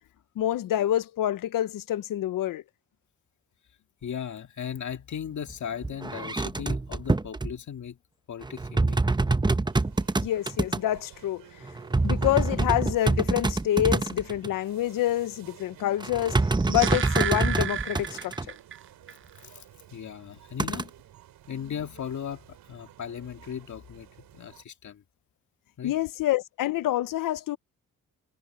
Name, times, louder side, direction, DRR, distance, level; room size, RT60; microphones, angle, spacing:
voice 1, 0.4-2.6 10.2-11.4 12.0-16.4 16.7-18.3 25.8-27.6, left 13 dB, 85° left, 0.9 m, -27 dB
voice 2, 4.0-8.0 8.3-9.0 19.4-19.6 19.9-20.9 21.5-24.1 24.3-25.0 25.8-26.0, left 8 dB, 60° left, 2.0 m, -37 dB
sound 1, 5.5-5.6 5.8-7.5 8.4-10.8 11.6-14.5 16.0-18.5 20.6-20.8, right 3 dB, 15° right, 0.8 m, -26 dB
sound 2, 9.7-24.6, right 12 dB, 90° right, 3.6 m, -53 dB
sound 3, 16.3-18.8 19.1-19.2, right 9 dB, 40° right, 0.5 m, -32 dB
cardioid pair, 70°, 32 cm